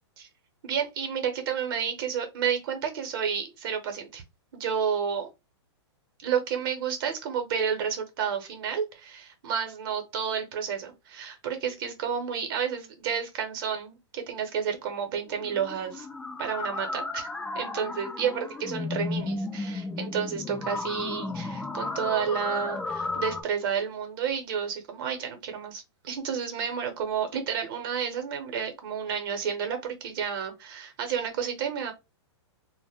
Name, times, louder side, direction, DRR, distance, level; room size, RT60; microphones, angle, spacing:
voice 1, 0.6-4.2 4.5-5.3 6.2-16.1 16.4-31.9, right 7 dB, 50° right, 0.8 m, -31 dB
sound 1, 15.3-23.4, left 3 dB, 10° left, 0.4 m, -34 dB
2.1 x 2.1 x 3.4 m
hypercardioid pair, 140°, 15 cm